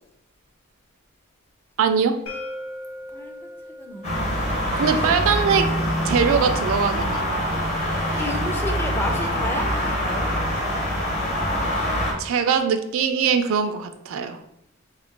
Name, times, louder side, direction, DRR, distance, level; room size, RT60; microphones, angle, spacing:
voice 1, 1.8-2.2 4.8-5.7 6.0-7.2 12.2-14.4, right 6 dB, 65° right, 9 dB, 0.3 m, -21 dB
sound 1, 2.3-8.1, left 1 dB, 70° left, 0.8 m, -41 dB
voice 2, 3.1-4.2 4.9-5.2 8.1-10.3, left 1 dB, 10° left, 2 dB, 0.4 m, -32 dB
sound 2, 4.0-12.1, equal, 35° left, 0.8 m, -24 dB
3.3 x 2.4 x 3.6 m, 0.80 s
head